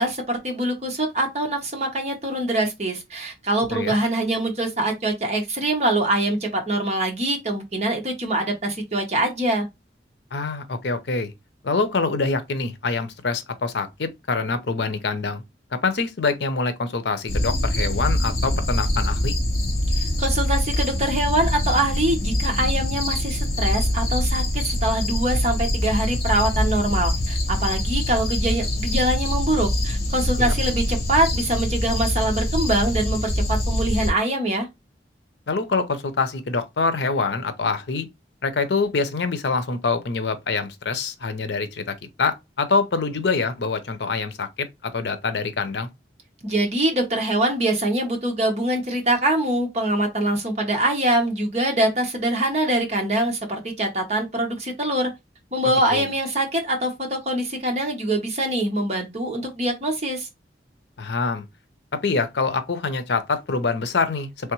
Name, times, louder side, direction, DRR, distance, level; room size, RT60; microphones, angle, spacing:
voice 1, 0.0-9.7 20.0-34.7 46.4-55.1 55.5-60.3, right 1 dB, 40° right, 1.0 m, -24 dB
voice 2, 10.3-11.3 11.6-15.4 15.7-19.4 30.4-30.5 35.5-38.1 38.4-45.9 55.9-56.1 61.0-61.4 61.9-64.5, left 4 dB, 80° left, 0.6 m, -25 dB
sound 1, 17.3-34.1, left 1 dB, 60° left, 1.2 m, -24 dB
3.4 x 3.3 x 3.0 m
head